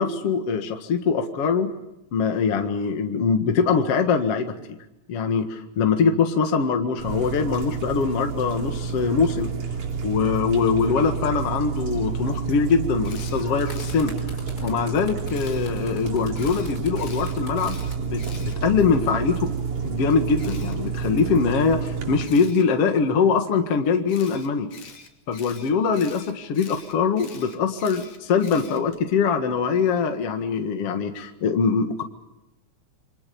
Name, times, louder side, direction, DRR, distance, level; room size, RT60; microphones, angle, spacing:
voice 1, 0.0-1.7 2.1-4.5 5.1-9.5 10.0-14.1 14.6-19.5 19.8-24.7 25.3-32.0, left 5 dB, 55° left, 6 dB, 2.6 m, -23 dB
sound 1, 7.0-22.2, right 6 dB, 70° right, 4.2 m, -29 dB
Camera, 13.0-14.0 15.3-15.7 16.3-19.1 20.4-20.7 22.2-22.6 24.1-29.0, left 6 dB, 85° left, 4.5 m, -45 dB
sound 2, 13.6-18.0 18.9-19.1, left 2 dB, 30° left, 6.2 m, -41 dB
28.5 x 25.0 x 7.0 m, 0.90 s
omnidirectional pair, 3.5 m